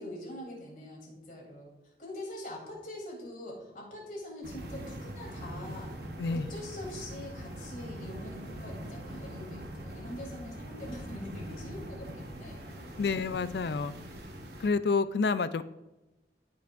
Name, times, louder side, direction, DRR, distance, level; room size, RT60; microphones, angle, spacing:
voice 1, 0.0-5.9 6.3-13.1, left 1 dB, 50° left, -3 dB, 3.1 m, -44 dB
sound 1, 4.4-14.7, right 1 dB, 60° right, 1.1 m, -42 dB
voice 2, 13.0-13.9 14.6-15.6, left 4 dB, 65° left, 14 dB, 0.4 m, -28 dB
14.0 x 5.7 x 2.5 m, 1.0 s
head